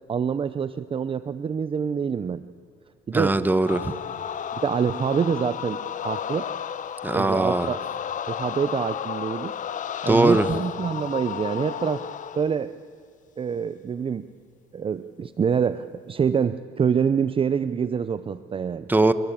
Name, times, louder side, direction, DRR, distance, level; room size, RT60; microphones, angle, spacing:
voice 1, 0.1-2.4 3.1-3.3 4.5-6.5 7.1-7.8 8.3-9.5 10.0-12.1 12.4-12.7 13.4-14.3 14.7-18.9, right 7 dB, 30° right, 13 dB, 0.7 m, -26 dB
voice 2, 3.1-3.9 7.0-7.7 10.1-10.5 18.9-19.1, right 2 dB, 10° right, 12 dB, 1.3 m, -20 dB
sound 1, 3.7-12.5, left 9 dB, 50° left, 1.1 m, -33 dB
30.0 x 22.0 x 8.7 m, 2.2 s
cardioid pair, 110°, 17 cm